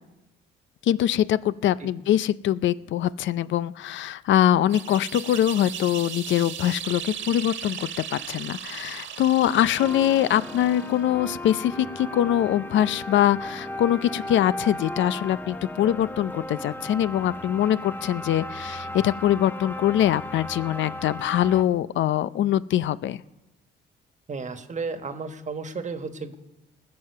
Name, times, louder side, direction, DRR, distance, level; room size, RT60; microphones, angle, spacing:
voice 1, 0.9-23.2, left 11 dB, 70° left, 17 dB, 0.5 m, -23 dB
sound 1, 4.7-11.1, right 8 dB, 70° right, 1.6 m, -37 dB
sound 2, 9.8-21.6, left 1 dB, 10° left, 0.9 m, -36 dB
voice 2, 24.3-26.4, right 4 dB, 35° right, 9 dB, 1.4 m, -33 dB
20.0 x 7.6 x 6.7 m, 1.0 s
cardioid pair, 90°, 20 cm